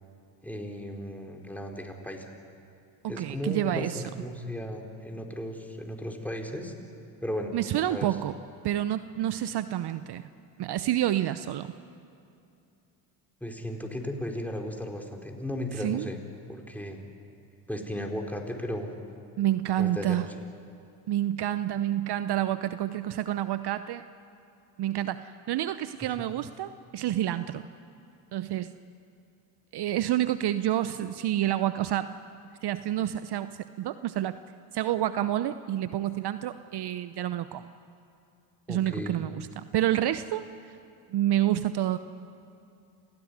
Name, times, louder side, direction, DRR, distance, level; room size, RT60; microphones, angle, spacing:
voice 1, 0.4-2.3 3.1-6.7 7.2-8.2 13.4-16.2 16.5-17.0 17.7-18.9 19.8-20.3 26.0-26.1 38.7-39.2, left 1 dB, 5° left, 2 dB, 4.5 m, -35 dB
voice 2, 3.0-4.0 7.5-8.4 8.6-10.3 10.6-11.7 15.8-16.1 19.4-20.3 21.1-24.0 24.8-27.7 28.3-28.8 29.7-32.1 32.6-34.4 34.7-37.7 38.7-40.8 41.1-42.0, right 12 dB, 55° right, 13 dB, 0.8 m, -28 dB
28.0 x 16.5 x 9.8 m, 2.6 s
hypercardioid pair, 65°, 48 cm